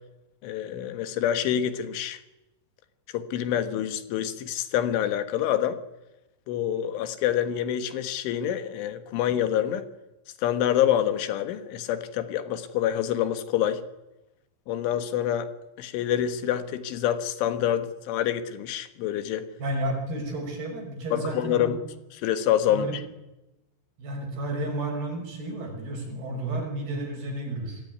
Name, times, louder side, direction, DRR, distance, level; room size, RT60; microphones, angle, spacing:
voice 1, 0.4-2.2 3.1-5.8 6.5-9.8 10.4-13.8 14.7-15.5 15.8-19.5 21.1-21.8 22.2-23.0, left 10 dB, 80° left, 10 dB, 3.9 m, -26 dB
voice 2, 19.6-21.8 22.7-22.9 24.0-27.8, right 1 dB, 55° right, 4 dB, 7.5 m, -32 dB
27.0 x 20.5 x 9.6 m, 0.97 s
omnidirectional pair, 5.5 m